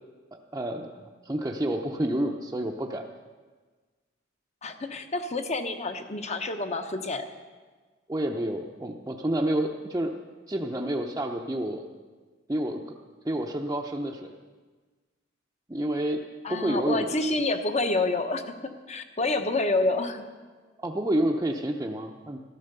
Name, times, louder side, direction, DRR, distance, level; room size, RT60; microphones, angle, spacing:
voice 1, 0.5-1.0 1.2-3.0 8.1-10.1 10.5-11.8 12.5-12.8 13.2-14.4 15.7-16.2 16.5-17.2 20.8-22.4, right 1 dB, 15° right, -1 dB, 0.7 m, -29 dB
voice 2, 4.6-7.3 16.4-20.2, left 2 dB, 35° left, 7 dB, 1.1 m, -28 dB
14.5 x 12.5 x 6.8 m, 1.4 s
head